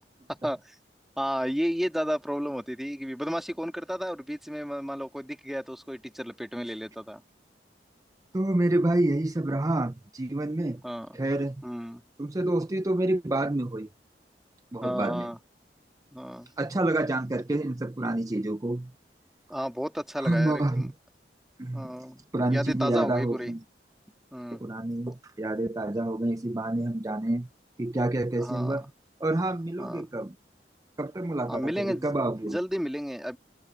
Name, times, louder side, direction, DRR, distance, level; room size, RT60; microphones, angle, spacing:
voice 1, 0.3-0.8 1.2-7.2 10.8-11.1 11.6-12.0 14.8-15.4 16.1-16.5 19.5-20.9 21.7-22.2 22.5-23.5 24.3-24.6 28.4-28.8 29.8-30.0 31.5-32.1 32.5-33.4, equal, ahead, 1.9 m, -32 dB
voice 2, 8.3-10.8 11.1-11.6 12.2-13.9 14.7-15.3 16.6-18.9 20.2-20.9 21.6-21.9 22.3-23.6 24.5-27.5 27.8-28.9 29.2-30.4 31.0-32.6, right 1 dB, 20° right, 0.5 m, -28 dB
head